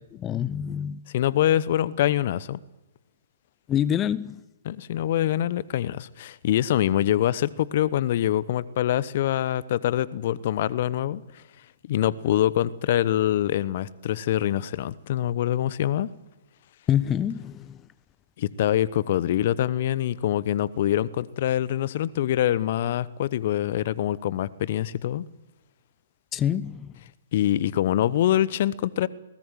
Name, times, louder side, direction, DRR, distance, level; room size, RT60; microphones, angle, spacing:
voice 1, 0.2-1.0 3.7-4.4 16.9-17.8 26.3-26.9, left 10 dB, 20° left, 0.7 m, -26 dB
voice 2, 1.1-2.6 4.6-11.4 11.9-16.1 18.4-25.2 27.3-29.1, left 12 dB, 50° left, 0.9 m, -24 dB
21.0 x 19.0 x 9.2 m
figure-of-eight pair, 125°, 0 cm